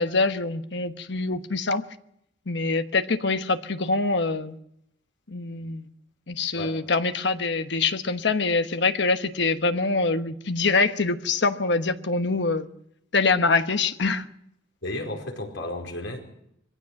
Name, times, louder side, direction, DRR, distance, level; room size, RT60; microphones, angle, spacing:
voice 1, 0.0-1.8 2.5-4.6 5.3-5.9 6.3-12.7 13.1-14.2, left 3 dB, 70° left, 1.2 m, -24 dB
voice 2, 14.8-16.2, left 1 dB, 85° left, 4.9 m, -33 dB
23.0 x 15.5 x 7.6 m
head